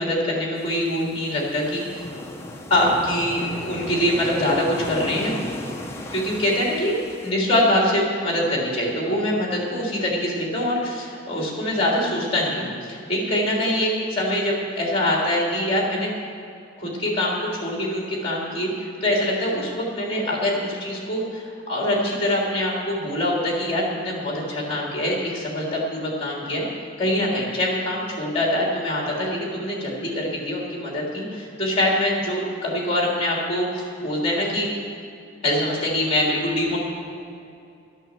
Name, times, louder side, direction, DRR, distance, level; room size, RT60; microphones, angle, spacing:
voice 1, 0.0-2.0 2.7-5.3 6.1-7.0 7.2-16.1 16.8-26.7 27.0-34.7 35.4-36.8, left 1 dB, 30° left, -2 dB, 3.2 m, -24 dB
sound 1, 0.5-7.3, left 1 dB, 15° left, 0.8 m, -36 dB
12.0 x 9.1 x 7.4 m, 2.5 s
head